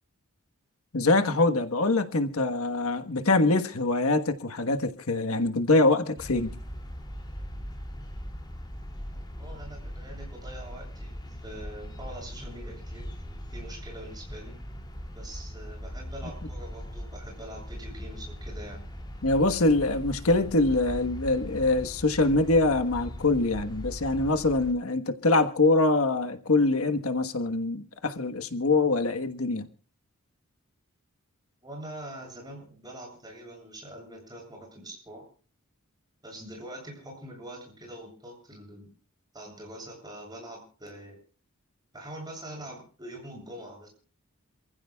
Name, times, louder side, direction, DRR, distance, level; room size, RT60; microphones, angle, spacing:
voice 1, 0.9-6.5 19.2-29.7, left 2 dB, 80° left, 1.3 m, -24 dB
sound 1, 6.2-24.7, equal, 20° left, 2.7 m, -40 dB
voice 2, 9.1-11.1 11.4-13.1 13.5-14.6 15.1-18.8 31.6-35.3 36.2-38.9 39.3-41.2 41.9-43.9, right 1 dB, 20° right, 7.7 m, -44 dB
28.0 x 15.5 x 2.3 m
head